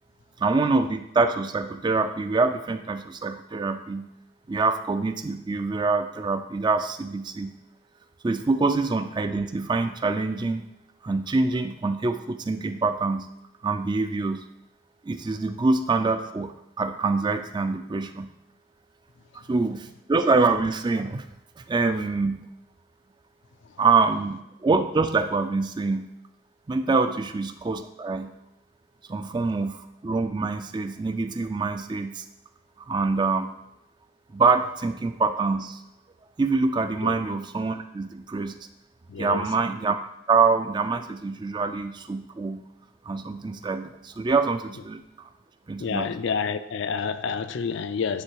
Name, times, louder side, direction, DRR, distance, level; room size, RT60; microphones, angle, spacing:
voice 1, 0.4-4.1 4.5-7.5 8.2-10.7 11.0-13.3 13.6-14.4 15.0-18.3 19.5-21.3 21.6-22.5 23.8-26.1 26.7-28.3 29.1-32.3 32.9-33.5 34.3-35.8 36.4-38.6 39.2-40.0 40.3-42.6 43.1-45.0 45.7-46.1, right 4 dB, 20° right, 9 dB, 0.3 m, -25 dB
voice 2, 39.1-39.5 45.8-48.2, left 5 dB, 60° left, 11 dB, 0.4 m, -28 dB
9.6 x 3.6 x 4.7 m, 0.83 s
head